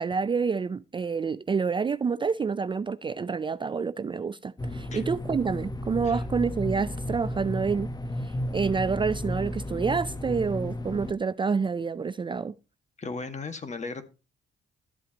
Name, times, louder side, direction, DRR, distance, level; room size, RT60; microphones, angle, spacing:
voice 1, 0.0-7.9 8.2-12.5, right 5 dB, 25° right, 0.4 m, -28 dB
sound 1, 4.6-11.1, left 1 dB, 20° left, 0.8 m, -33 dB
voice 2, 13.0-14.0, left 3 dB, 35° left, 1.7 m, -36 dB
12.5 x 8.2 x 2.9 m
cardioid pair, 90°, 20 cm